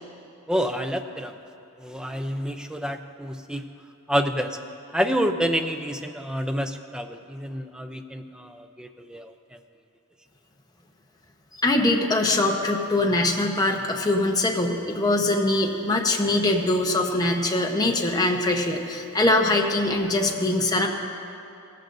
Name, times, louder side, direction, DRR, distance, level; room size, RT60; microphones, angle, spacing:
voice 1, 0.5-1.3 1.8-3.6 4.1-4.6 4.9-9.3, equal, 5° right, 6 dB, 0.5 m, -28 dB
voice 2, 11.6-20.9, left 2 dB, 15° left, 1 dB, 0.9 m, -22 dB
17.5 x 14.5 x 2.6 m, 2.7 s
head